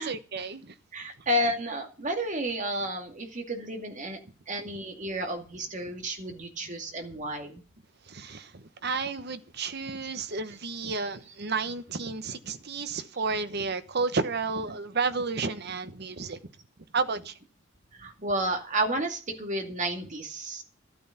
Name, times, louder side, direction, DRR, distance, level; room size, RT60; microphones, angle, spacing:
voice 1, 0.0-0.7 8.1-16.4 16.9-17.4, right 4 dB, 55° right, 1.1 m, -32 dB
voice 2, 0.9-4.2 4.5-7.6 18.0-20.6, right 1 dB, 40° right, 2.3 m, -31 dB
13.0 x 9.2 x 5.9 m
head